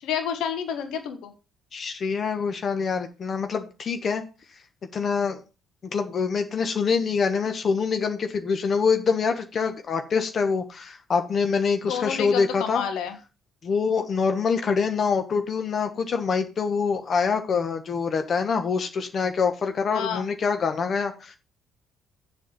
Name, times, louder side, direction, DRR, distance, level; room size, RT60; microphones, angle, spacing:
voice 1, 0.0-1.3 11.9-13.2 19.9-20.3, left 8 dB, 65° left, 8 dB, 1.4 m, -29 dB
voice 2, 1.7-4.2 4.9-5.4 5.9-12.8 13.6-21.4, left 5 dB, 45° left, 7 dB, 1.3 m, -25 dB
7.6 x 5.8 x 7.2 m, 0.32 s
hypercardioid pair, 50°, 0 cm